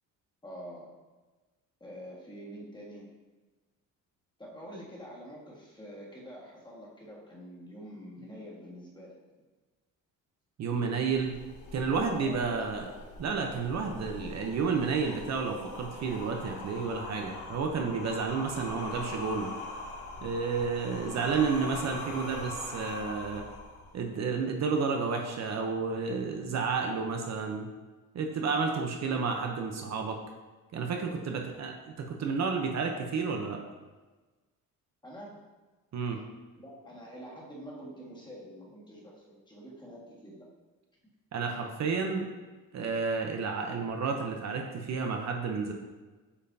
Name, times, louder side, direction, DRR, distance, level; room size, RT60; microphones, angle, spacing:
voice 1, 0.4-0.9 1.8-3.2 4.4-9.2 12.2-12.4 18.4-18.7 21.1-21.7 35.0-35.5 36.6-40.5, equal, 15° left, -5 dB, 1.7 m, -46 dB
voice 2, 10.6-11.4 11.7-12.9 13.2-19.5 20.2-23.5 23.9-27.7 28.1-30.2 30.7-33.6 35.9-36.2 41.3-42.3 42.7-45.7, right 5 dB, 55° right, 3 dB, 0.8 m, -31 dB
sound 1, 11.1-24.1, left 3 dB, 60° left, 1.2 m, -42 dB
8.2 x 5.4 x 2.7 m, 1.3 s
cardioid pair, 130°, 33 cm